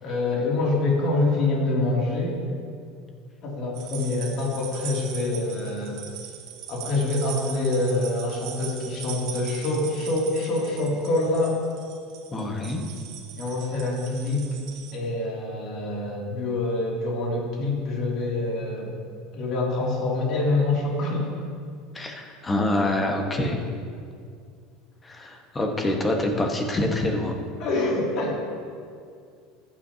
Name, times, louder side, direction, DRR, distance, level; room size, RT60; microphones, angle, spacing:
voice 1, 0.0-2.4 3.4-6.0 6.7-11.6 13.4-14.5 14.9-18.9 19.3-21.3 27.6-28.4, left 2 dB, 55° left, -2 dB, 2.8 m, -26 dB
sound 1, 3.8-14.9, right 9 dB, 65° right, 1.2 m, -40 dB
voice 2, 12.3-12.8 21.9-23.6 25.0-27.4, left 1 dB, 20° left, 2 dB, 1.4 m, -26 dB
14.5 x 9.0 x 2.9 m, 2.2 s
supercardioid pair, 95°, 0 cm